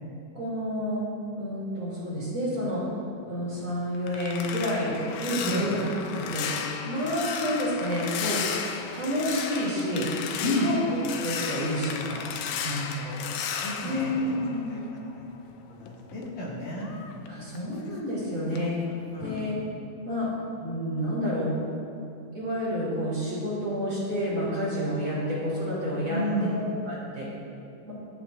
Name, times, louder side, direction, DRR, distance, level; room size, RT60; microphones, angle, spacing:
voice 1, 0.4-1.0 1.3-2.8 3.3-6.5 6.9-8.4 8.9-10.1 10.4-10.8 11.2-12.2 13.8-14.8 17.3-18.8 19.2-19.6 20.0-20.3 20.6-21.5 22.3-26.2 26.5-27.3 27.8-27.9, equal, 35° right, -8 dB, 3.6 m, -29 dB
sound 1, 3.5-15.2 15.5-18.2 18.5-18.8 19.2-19.5, left 7 dB, 90° left, 2.5 m, -35 dB
voice 2, 5.4-5.8 10.4-10.7 12.6-13.3 13.6-14.3 14.7-15.3 15.8-16.9 19.1-19.5 26.1-26.6, equal, 55° left, -6 dB, 3.3 m, -31 dB
25.5 x 8.6 x 2.7 m, 2.8 s
omnidirectional pair, 4.0 m